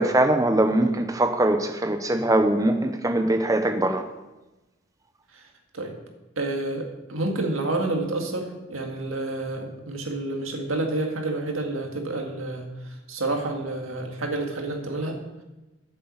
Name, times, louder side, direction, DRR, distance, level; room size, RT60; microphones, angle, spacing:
voice 1, 0.0-4.0, right 1 dB, 15° right, 6 dB, 0.7 m, -22 dB
voice 2, 6.4-12.7 13.1-15.2, right 2 dB, 85° right, 2 dB, 1.9 m, -29 dB
8.4 x 7.6 x 7.1 m, 1.0 s
head